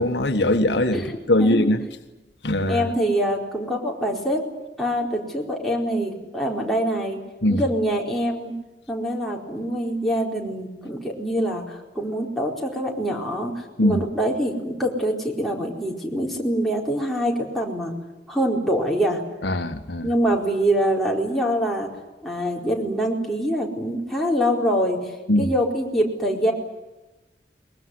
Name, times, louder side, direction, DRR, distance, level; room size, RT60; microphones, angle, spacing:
voice 1, 0.0-1.8 2.4-2.9 7.4-7.6 13.8-14.0 19.4-20.1 25.3-25.5, left 1 dB, 75° left, 1.6 m, -21 dB
voice 2, 0.9-1.7 2.7-4.4 4.8-7.2 7.5-8.6 8.9-18.0 18.3-19.2 20.0-21.9 22.2-25.1 25.4-26.5, equal, ahead, 4.5 m, -24 dB
23.0 x 21.5 x 9.8 m
head